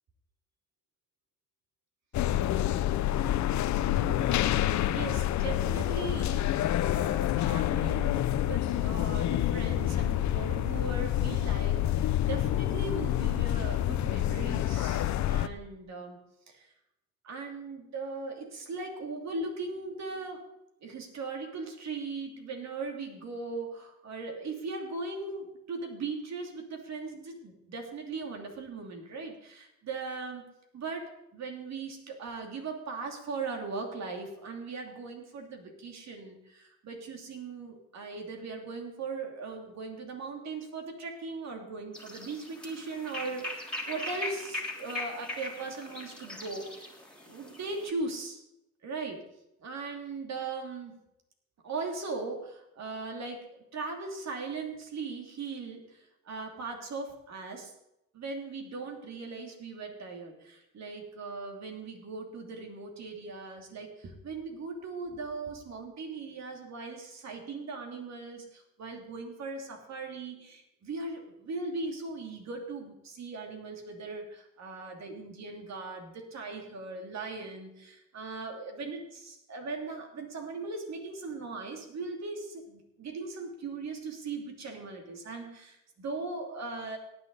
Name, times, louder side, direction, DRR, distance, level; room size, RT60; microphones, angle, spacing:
sound 1, 2.1-15.5, left 12 dB, 70° left, 0.7 m, -28 dB
voice 1, 3.9-16.2 16.5-16.7 17.2-20.4 20.8-46.9 47.2-48.4 48.8-49.3 49.6-50.9 51.6-57.7 58.1-87.0, right 3 dB, 60° right, 2 dB, 2.9 m, -39 dB
sound 2, 41.9-47.9, left 1 dB, 5° left, 3.2 m, -40 dB
17.5 x 9.3 x 4.1 m, 0.85 s
cardioid pair, 90°, 30 cm